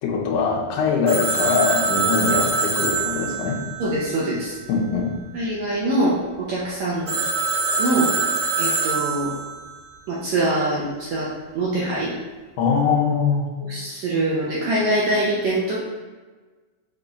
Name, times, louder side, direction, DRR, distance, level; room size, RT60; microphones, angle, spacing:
voice 1, 0.0-3.6 4.7-5.1 12.6-13.5, left 5 dB, 75° left, 0 dB, 2.4 m, -22 dB
Telephone, 1.1-4.7 7.1-9.6, right 4 dB, 40° right, 2.2 m, -24 dB
voice 2, 3.8-4.6 5.3-7.1 7.8-8.1 8.6-9.3 10.1-11.3 11.5-12.1 13.6-15.8, right 1 dB, 75° right, -6 dB, 1.6 m, -23 dB
6.9 x 3.6 x 4.0 m, 1.3 s
omnidirectional pair, 4.3 m